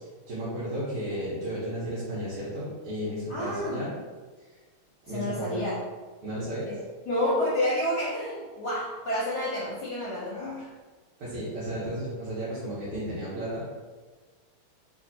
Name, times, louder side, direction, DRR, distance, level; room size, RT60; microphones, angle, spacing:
voice 1, 0.3-3.9 5.1-5.6 6.2-6.7 10.3-10.7 11.2-13.7, right 1 dB, 85° right, -11 dB, 1.9 m, -34 dB
voice 2, 3.3-3.8 5.1-5.8 6.7-6.8 7.1-10.6, left 1 dB, 65° left, -7 dB, 1.1 m, -29 dB
3.4 x 3.2 x 2.7 m, 1.4 s
omnidirectional pair, 2.3 m